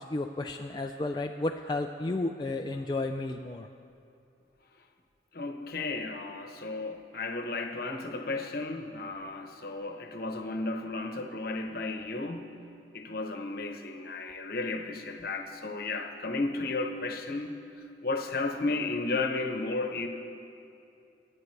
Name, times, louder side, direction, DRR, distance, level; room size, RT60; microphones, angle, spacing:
voice 1, 0.0-3.7, left 2 dB, 25° left, 3 dB, 0.3 m, -32 dB
voice 2, 5.3-12.5 12.9-17.5 18.0-20.1, left 3 dB, 55° left, 4 dB, 1.0 m, -33 dB
24.0 x 9.1 x 3.3 m, 2.7 s
head